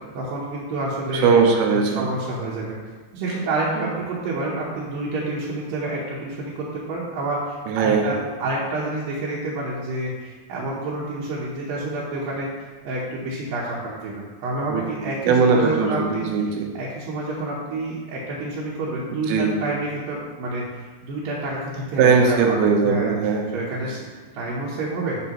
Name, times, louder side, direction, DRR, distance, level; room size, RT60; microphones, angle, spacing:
voice 1, 0.1-1.3 1.7-2.8 3.1-12.5 12.8-16.2 16.7-23.1 23.5-25.2, right 2 dB, 75° right, -7 dB, 2.6 m, -28 dB
voice 2, 1.1-2.1 7.7-8.1 14.7-16.7 19.3-19.5 22.0-23.7 23.9-24.0, right 5 dB, 90° right, 2 dB, 2.8 m, -20 dB
7.6 x 7.2 x 3.0 m, 1.4 s
omnidirectional pair, 4.3 m